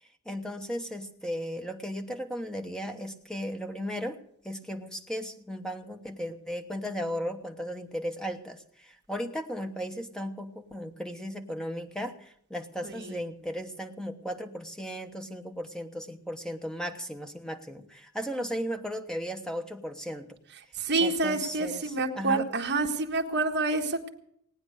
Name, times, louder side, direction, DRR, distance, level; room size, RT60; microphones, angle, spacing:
voice 1, 0.2-4.2 4.4-20.4 21.0-22.5, equal, 5° left, 5 dB, 1.0 m, -36 dB
voice 2, 12.8-13.2 20.8-24.1, right 3 dB, 50° right, 2 dB, 1.6 m, -28 dB
18.0 x 9.5 x 6.5 m, 0.69 s
head